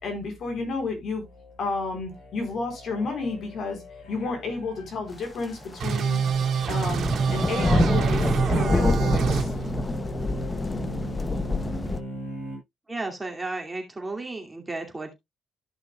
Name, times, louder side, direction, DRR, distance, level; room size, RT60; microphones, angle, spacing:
voice 1, 0.0-1.2 1.6-3.8 4.1-6.2 6.7-9.5, left 3 dB, 55° left, 4.0 m, -31 dB
sound 1, 1.3-12.6, right 1 dB, 75° left, 6.3 m, -39 dB
sound 2, 5.6-5.8 6.1-12.0, left 2 dB, 20° left, 0.8 m, -27 dB
sound 3, 5.8-9.4, right 6 dB, 65° right, 2.3 m, -25 dB
voice 2, 12.9-15.1, right 2 dB, 20° right, 2.4 m, -33 dB
14.0 x 6.0 x 2.3 m
cardioid pair, 90°, 0 cm